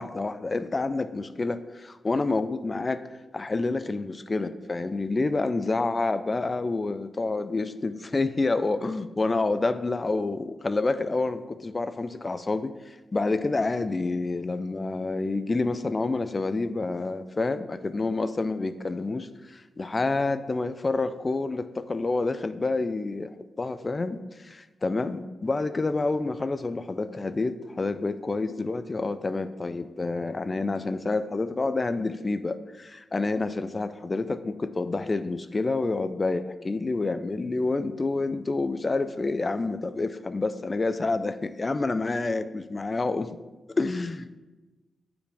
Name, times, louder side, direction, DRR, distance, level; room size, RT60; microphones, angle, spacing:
voice 1, 0.0-3.0 3.3-43.4 43.7-44.4, left 3 dB, 30° left, 12 dB, 0.4 m, -28 dB
9.2 x 4.9 x 3.4 m, 1.1 s
wide cardioid pair, 110°, 0 cm